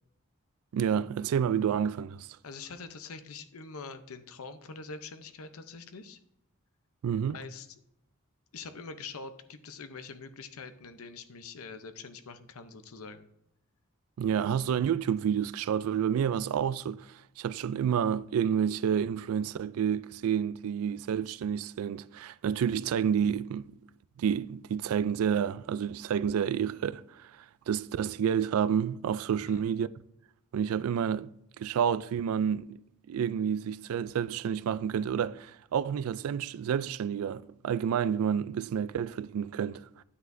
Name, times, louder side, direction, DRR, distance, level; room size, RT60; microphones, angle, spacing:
voice 1, 0.7-2.3 7.0-7.4 14.2-17.1 17.4-23.8 24.2-27.3 27.7-29.9 30.5-31.3 31.6-32.8 33.1-40.0, right 8 dB, 75° right, 0.3 m, -29 dB
voice 2, 2.4-6.2 7.3-7.7 8.5-13.3 29.4-29.6, left 4 dB, 80° left, 0.7 m, -44 dB
9.7 x 8.0 x 2.6 m
head